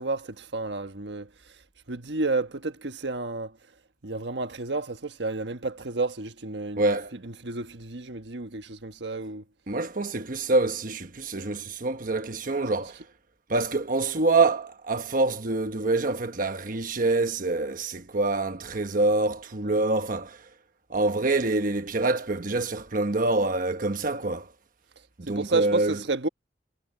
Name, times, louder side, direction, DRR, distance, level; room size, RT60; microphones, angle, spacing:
voice 1, 0.0-1.6 1.9-3.6 4.0-9.4 19.6-20.0 25.2-26.3, right 3 dB, 80° right, 1.4 m, -31 dB
voice 2, 6.8-7.1 9.7-13.0 13.5-20.5 20.9-24.5 25.2-26.0, right 2 dB, 50° right, 1.2 m, -26 dB
head